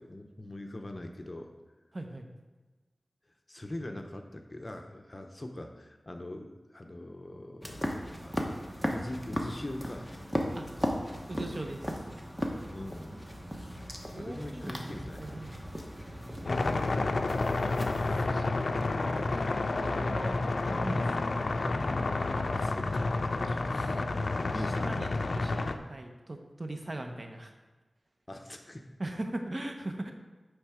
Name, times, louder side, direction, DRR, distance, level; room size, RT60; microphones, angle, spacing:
voice 1, 0.0-1.5 3.5-8.3 8.7-10.1 12.7-13.9 14.2-15.6 16.4-17.1 22.5-23.1 23.4-24.0 24.5-25.3 28.3-28.9, left 1 dB, 35° left, 4 dB, 0.8 m, -43 dB
voice 2, 1.9-2.3 10.5-10.7 11.3-12.0 14.1-15.5 16.1-16.6 18.2-19.4 19.7-21.7 24.5-27.5 29.0-30.1, right 1 dB, 50° right, 4 dB, 0.8 m, -40 dB
sound 1, 7.6-18.2, equal, ahead, 1.0 m, -37 dB
sound 2, 16.5-25.8, left 3 dB, 70° left, 0.4 m, -30 dB
8.8 x 3.4 x 4.9 m, 1.2 s
wide cardioid pair, 55°, 0 cm